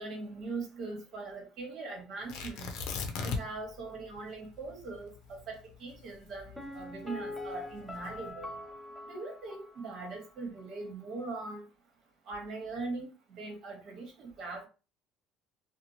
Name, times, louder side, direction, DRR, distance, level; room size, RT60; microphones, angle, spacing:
voice 1, 0.0-2.7 3.2-8.5 9.0-11.6 12.3-14.7, right 3 dB, 55° right, 1 dB, 1.3 m, -41 dB
Tearing, 2.3-3.7 4.0-4.1 4.6-7.0 7.7-8.1, left 5 dB, 70° left, 0.6 m, -37 dB
Piano, 6.6-10.3 10.6-10.7, left 2 dB, 5° left, 0.4 m, -43 dB
2.8 x 2.2 x 2.7 m, 0.31 s
cardioid pair, 110°, 0 cm